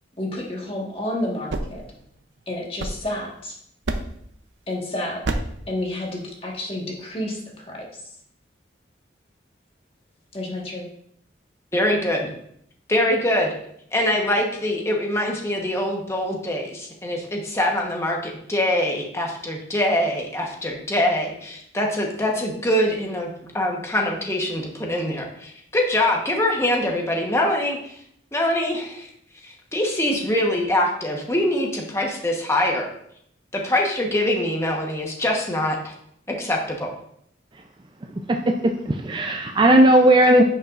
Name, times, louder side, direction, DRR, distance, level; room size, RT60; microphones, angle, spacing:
voice 1, 0.2-1.8 2.5-3.6 4.7-5.2 5.7-8.0 10.3-10.9, left 1 dB, 30° left, -2 dB, 1.5 m, -30 dB
sound 1, 1.3-3.4 3.8-4.3 5.2-5.7, right 2 dB, 80° right, 0.6 m, -30 dB
voice 2, 11.7-12.3 12.9-13.5 13.9-23.3 23.5-28.0 28.3-29.1 29.4-32.9 33.5-35.9 36.3-36.9, left 1 dB, 15° left, 0 dB, 1.1 m, -23 dB
voice 3, 38.1-40.4, right 1 dB, 25° right, 3 dB, 0.4 m, -17 dB
10.0 x 5.5 x 2.5 m, 0.70 s
head